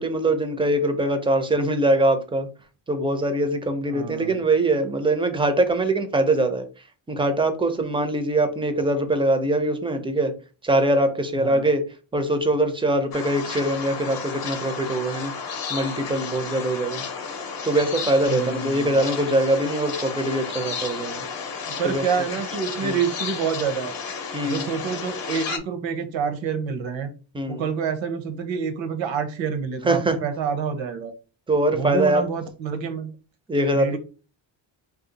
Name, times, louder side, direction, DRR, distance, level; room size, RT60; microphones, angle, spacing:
voice 1, 0.0-2.5 2.9-6.7 7.1-10.3 10.6-11.8 12.1-15.3 15.7-17.0 17.6-21.2 21.8-22.0 22.8-23.0 24.3-24.7 27.3-27.7 29.9-30.2 31.5-32.2 33.5-34.0, right 1 dB, 10° right, 7 dB, 0.4 m, -22 dB
voice 2, 3.9-4.4 11.4-11.7 18.2-18.9 21.7-23.9 24.4-27.1 27.5-31.1 31.7-33.1 33.6-34.0, right 6 dB, 75° right, 8 dB, 0.9 m, -27 dB
sound 1, 13.1-25.6, left 5 dB, 50° left, 0.7 m, -32 dB
2.6 x 2.4 x 3.9 m, 0.34 s
cardioid pair, 120°, 46 cm